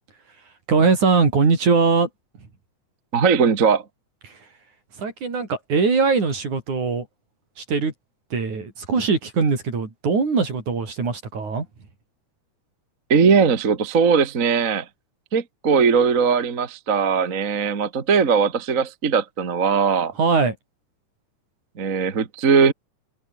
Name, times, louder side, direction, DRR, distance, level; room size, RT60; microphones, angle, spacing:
voice 1, 0.7-2.1 4.3-4.4 5.0-7.1 7.6-7.9 8.3-11.7 20.2-20.6, right 4 dB, 65° right, 6.5 m, -21 dB
voice 2, 3.1-3.8 13.1-14.9 15.3-20.1 21.8-22.7, right 5 dB, 30° right, 1.7 m, -19 dB
omnidirectional pair, 3.7 m